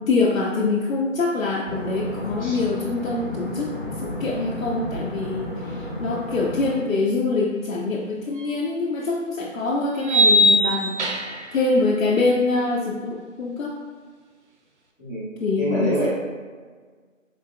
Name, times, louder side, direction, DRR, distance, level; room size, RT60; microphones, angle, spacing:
voice 1, 0.0-11.0 11.5-13.7 15.4-16.1, left 3 dB, 80° left, -3 dB, 0.5 m, -24 dB
sound 1, 1.6-6.7, left 1 dB, 40° left, 0.9 m, -32 dB
sound 2, 8.4-8.5 10.1-11.5, left 1 dB, 60° right, 0.5 m, -19 dB
voice 2, 15.6-16.1, equal, 15° left, -16 dB, 0.7 m, -25 dB
3.7 x 2.4 x 2.3 m, 1.5 s
figure-of-eight pair, 155°, 40 cm